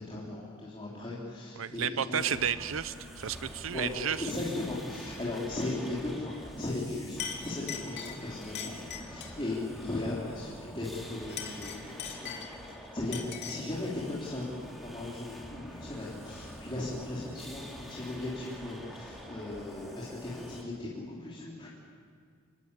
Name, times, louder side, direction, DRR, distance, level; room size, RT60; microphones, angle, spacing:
voice 1, 0.0-2.4 3.7-12.3 12.8-14.4 14.8-21.7, left 2 dB, 25° left, -7 dB, 3.7 m, -37 dB
voice 2, 1.6-4.3, right 8 dB, 75° right, 14 dB, 0.7 m, -32 dB
sound 1, 2.2-20.6, equal, ahead, 3.3 m, -46 dB
Chink clink, 6.7-6.9 7.2-9.4 11.2-12.7 13.1-13.7, left 7 dB, 55° left, 2.9 m, -41 dB
26.5 x 20.0 x 8.4 m, 2.1 s
head